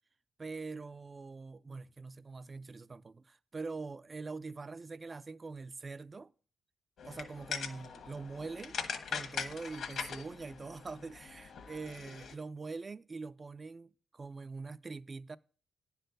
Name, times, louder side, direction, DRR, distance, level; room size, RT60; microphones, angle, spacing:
voice 1, 0.4-6.3 7.0-8.8 9.1-15.4, right 4 dB, 25° right, 0.4 m, -44 dB
sound 1, 7.0-12.3, left 6 dB, 60° left, 1.3 m, -42 dB
10.5 x 4.5 x 7.8 m
wide cardioid pair, 165°, 0 cm